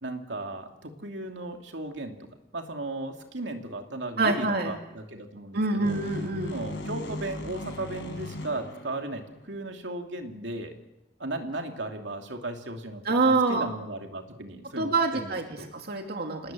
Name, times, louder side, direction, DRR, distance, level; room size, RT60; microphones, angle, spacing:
voice 1, 0.0-2.2 2.5-6.0 6.5-10.7 11.2-15.7, right 2 dB, 75° right, 3 dB, 2.8 m, -36 dB
voice 2, 4.2-4.7 5.5-6.6 13.0-13.7 14.8-15.5 15.7-16.5, right 3 dB, 60° right, 3 dB, 2.5 m, -26 dB
sound 1, 5.8-9.6, left 1 dB, 70° left, 5.9 m, -38 dB
27.5 x 19.5 x 7.7 m, 0.89 s
head